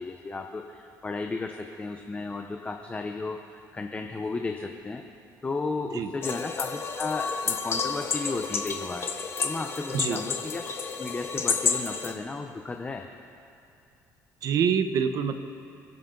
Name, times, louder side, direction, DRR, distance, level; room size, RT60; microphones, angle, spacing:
voice 1, 0.0-5.0 5.4-9.1 9.4-10.7 11.0-13.0, left 3 dB, 20° left, 4 dB, 0.9 m, -34 dB
sound 1, 6.2-12.1, left 5 dB, 35° left, 1.3 m, -30 dB
voice 2, 14.4-15.3, right 7 dB, 60° right, 9 dB, 1.1 m, -25 dB
29.5 x 10.5 x 3.9 m, 2.5 s
cardioid pair, 120°, 7 cm